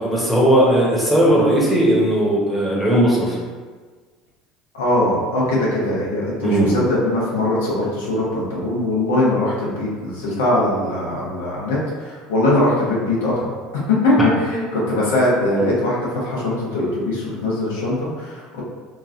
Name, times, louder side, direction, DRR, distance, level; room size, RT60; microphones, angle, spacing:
voice 1, 0.0-3.4 6.4-6.7 14.5-14.7, right 1 dB, ahead, -5 dB, 0.9 m, -17 dB
voice 2, 4.7-18.6, left 1 dB, 90° left, -6 dB, 0.9 m, -21 dB
3.0 x 2.5 x 2.4 m, 1.5 s
supercardioid pair, 90°, 0 cm